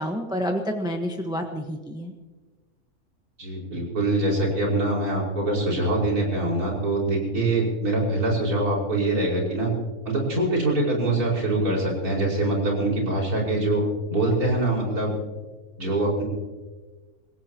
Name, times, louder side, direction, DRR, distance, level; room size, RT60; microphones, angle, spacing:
voice 1, 0.0-2.1, equal, 5° right, 3 dB, 1.1 m, -29 dB
voice 2, 3.4-9.7 10.1-13.8 14.1-15.1 15.8-16.2, right 2 dB, 80° right, -3 dB, 5.8 m, -24 dB
28.0 x 16.0 x 3.0 m, 1.3 s
omnidirectional pair, 1.6 m